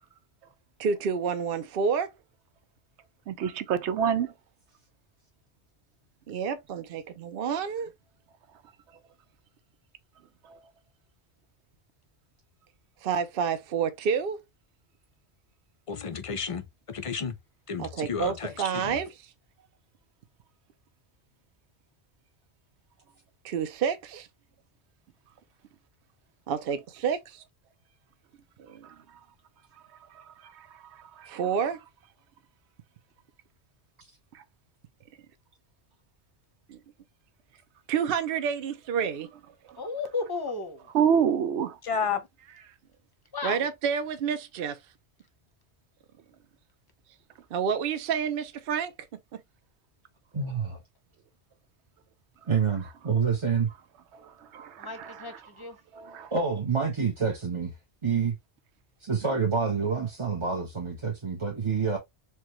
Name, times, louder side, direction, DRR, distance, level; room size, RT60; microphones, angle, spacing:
voice 1, 0.8-2.1 6.3-7.9 13.0-14.4 17.8-19.1 23.4-24.3 26.5-27.4 28.7-28.9 31.3-31.8 36.7-36.8 37.9-39.3 43.4-44.8 47.5-48.9 49.3-49.4, right 7 dB, 60° right, 0.8 m, -29 dB
voice 2, 3.3-4.3 30.4-30.7 31.2-31.4 34.3-34.4 40.9-41.7 54.2-55.3 56.0-56.3, right 8 dB, 85° right, 0.9 m, -27 dB
voice 3, 15.9-17.4 17.7-19.0 41.8-42.2, left 6 dB, 45° left, 0.4 m, -32 dB
voice 4, 39.7-40.9 43.3-43.7 54.8-55.8, left 4 dB, 25° left, 0.7 m, -34 dB
voice 5, 50.3-50.8 52.5-53.7 56.3-57.7 58.0-58.3 59.0-62.0, right 5 dB, 30° right, 0.8 m, -27 dB
4.4 x 2.2 x 3.0 m
omnidirectional pair, 1.1 m